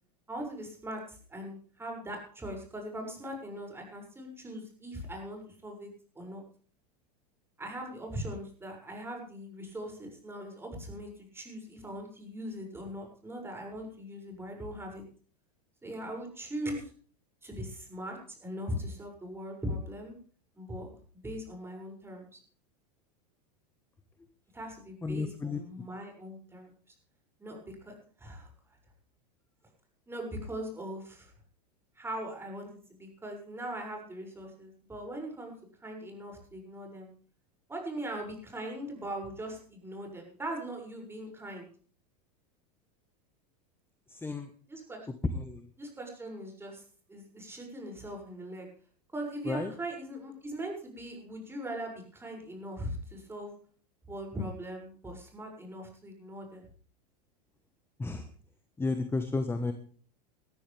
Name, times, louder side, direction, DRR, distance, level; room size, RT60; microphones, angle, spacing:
voice 1, 0.3-5.9 6.1-6.4 7.6-15.0 15.8-16.9 17.4-20.1 20.5-20.9 21.1-22.4 24.5-26.7 27.4-28.5 30.1-31.3 32.0-35.5 35.8-37.1 37.7-41.7 44.7-45.1 45.8-46.8 47.1-48.7 49.1-53.6 54.1-56.6, equal, 10° right, 1 dB, 6.8 m, -40 dB
voice 2, 25.0-25.6 44.1-44.5 45.3-45.7 49.4-49.7 58.0-58.3 58.8-59.7, left 3 dB, 10° left, 8 dB, 1.4 m, -32 dB
20.0 x 13.0 x 3.5 m, 0.43 s
hypercardioid pair, 105°, 20 cm